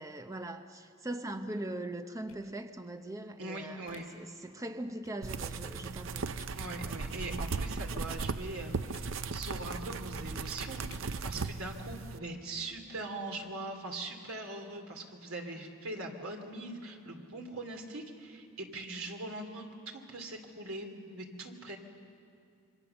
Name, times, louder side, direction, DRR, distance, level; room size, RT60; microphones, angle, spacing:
voice 1, 0.0-6.3, right 1 dB, 15° right, 7 dB, 0.6 m, -41 dB
sound 1, 2.3-2.4 3.8-4.0 5.0-5.1 6.3-6.5 7.5-7.7 8.9-9.0 9.6-9.8 10.9-11.0, left 7 dB, 75° left, 5.0 m, -57 dB
voice 2, 3.4-4.1 6.5-19.7 19.9-21.8, right 2 dB, 80° right, 3 dB, 2.8 m, -41 dB
sound 2, 5.2-12.2, right 4 dB, 60° right, 0.6 m, -37 dB
27.0 x 24.0 x 6.9 m, 2.6 s
head